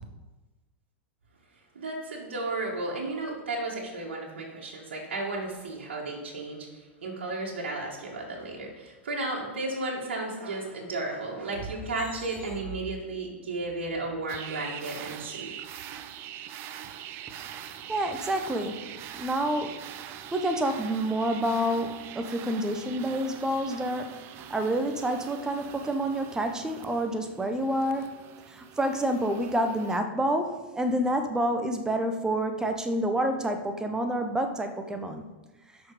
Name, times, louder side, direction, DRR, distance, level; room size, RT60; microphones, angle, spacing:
voice 1, 1.7-15.5, right 2 dB, 65° right, -2 dB, 2.4 m, -34 dB
sound 1, 14.3-30.0, right 10 dB, 40° right, 0.7 m, -43 dB
voice 2, 17.9-19.9 20.3-35.3, right 1 dB, 10° right, 6 dB, 1.3 m, -28 dB
13.0 x 5.9 x 5.3 m, 1.2 s
figure-of-eight pair, 95°, 6 cm